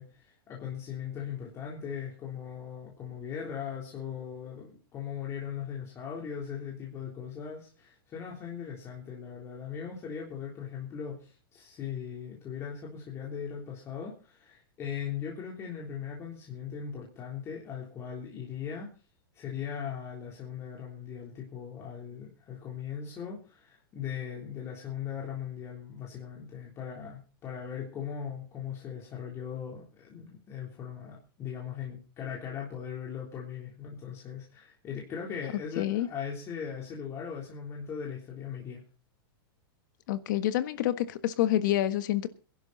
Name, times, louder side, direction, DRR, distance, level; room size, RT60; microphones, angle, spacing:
voice 1, 0.0-18.9 19.3-38.8, left 8 dB, 20° left, 3.5 m, -39 dB
voice 2, 35.8-36.1 40.1-42.3, left 12 dB, 55° left, 1.5 m, -27 dB
22.0 x 11.5 x 4.1 m
supercardioid pair, 160°, 12 cm